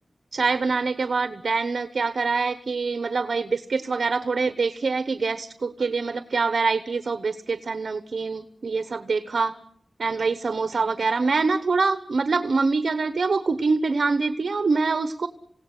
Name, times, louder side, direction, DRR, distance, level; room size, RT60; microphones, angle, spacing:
voice 1, 0.3-9.6 10.0-15.3, right 4 dB, 80° right, 11 dB, 1.1 m, -25 dB
27.5 x 17.0 x 8.2 m, 0.70 s
wide cardioid pair, 75°, 0 cm